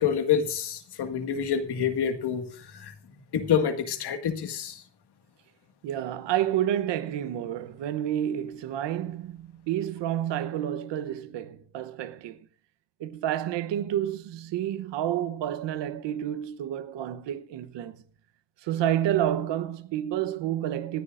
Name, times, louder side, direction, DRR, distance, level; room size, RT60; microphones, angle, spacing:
voice 1, 0.0-2.9 3.3-4.8, left 8 dB, 70° left, 2.0 m, -27 dB
voice 2, 5.8-12.5 13.0-18.0 18.6-21.0, right 11 dB, 85° right, 1.0 m, -29 dB
26.0 x 10.0 x 2.5 m
cardioid pair, 85°, 42 cm